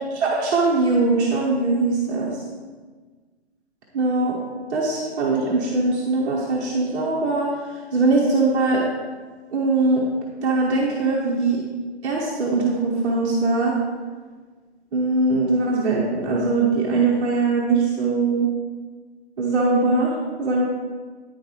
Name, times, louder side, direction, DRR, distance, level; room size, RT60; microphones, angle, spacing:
voice 1, 0.1-2.4 3.9-4.4 4.7-8.8 9.5-10.0 10.4-11.6 12.0-13.8 14.9-18.5 19.4-20.6, right 3 dB, 10° right, -6 dB, 0.8 m, -21 dB
9.7 x 6.9 x 4.8 m, 1.4 s
hypercardioid pair, 170°, 33 cm